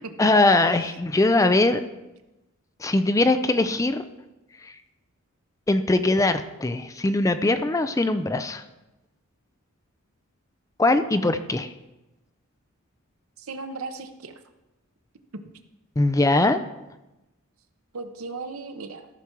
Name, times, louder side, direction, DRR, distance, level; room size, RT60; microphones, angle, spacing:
voice 1, 0.2-1.8 2.8-4.0 4.6-4.7 5.7-8.6 10.8-11.7 16.0-16.6, left 2 dB, 15° left, 10 dB, 0.4 m, -21 dB
voice 2, 13.4-14.4 17.9-19.1, right 3 dB, 80° right, 8 dB, 0.9 m, -36 dB
14.0 x 5.9 x 4.6 m, 0.99 s
head